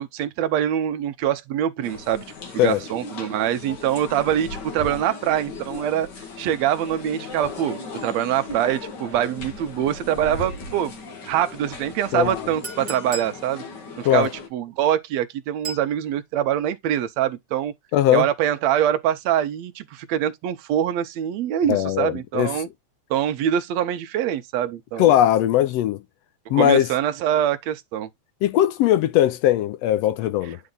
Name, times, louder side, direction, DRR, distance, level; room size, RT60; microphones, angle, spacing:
voice 1, 0.0-2.2 2.5-6.1 6.4-11.0 11.2-13.6 14.0-17.7 18.1-22.7 23.1-25.2 26.5-28.1, right 10 dB, 75° right, 1.9 m, -24 dB
sound 1, 1.8-14.5, left 3 dB, 45° left, 1.8 m, -37 dB
Chink clink, 12.6-13.4 15.6-15.9, right 3 dB, 25° right, 2.4 m, -34 dB
voice 2, 17.9-18.3 21.7-22.5 25.0-26.0 26.5-26.9 28.4-30.6, left 12 dB, 75° left, 1.6 m, -19 dB
9.6 x 3.8 x 3.8 m
omnidirectional pair, 3.3 m